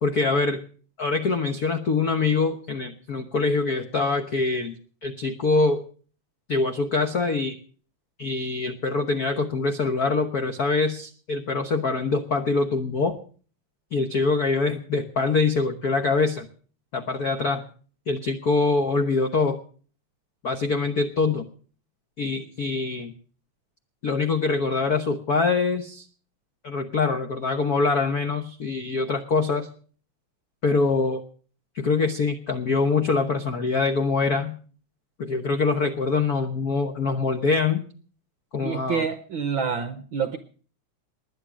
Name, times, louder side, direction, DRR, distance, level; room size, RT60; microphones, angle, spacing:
voice 1, 0.0-0.6 1.0-4.7 5.0-5.8 6.5-7.6 8.2-13.1 13.9-16.5 16.9-17.6 18.1-19.6 20.4-21.4 22.2-23.1 24.0-26.1 26.6-29.7 30.6-31.2 31.7-34.5 35.2-37.8 38.5-39.0, left 4 dB, 85° left, 7 dB, 0.8 m, -24 dB
voice 2, 38.6-40.4, right 6 dB, 70° right, 11 dB, 1.1 m, -27 dB
20.5 x 9.9 x 6.2 m, 0.43 s
omnidirectional pair, 3.3 m